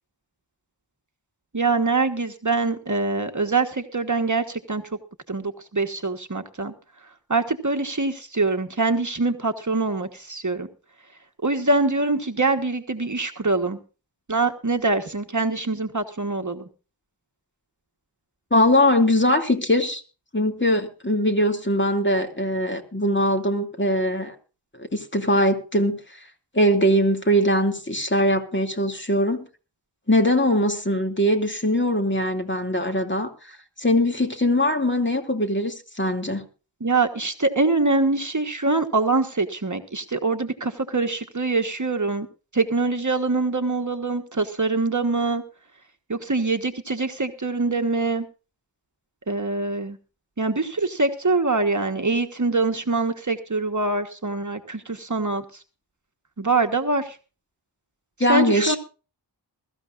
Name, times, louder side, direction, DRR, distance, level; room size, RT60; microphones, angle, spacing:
voice 1, 1.5-4.9 5.3-6.7 7.3-10.7 11.4-13.8 14.3-16.7 36.8-42.3 42.5-45.4 46.1-48.3 49.3-50.0 50.4-55.4 56.4-57.2 58.3-58.8, right 3 dB, 40° right, 5 dB, 1.4 m, -24 dB
voice 2, 18.5-20.0 20.3-24.3 24.8-26.0 26.5-29.5 30.1-36.4 58.2-58.8, left 1 dB, 25° left, 4 dB, 2.6 m, -21 dB
22.0 x 14.0 x 2.5 m, 0.34 s
wide cardioid pair, 75°, 44 cm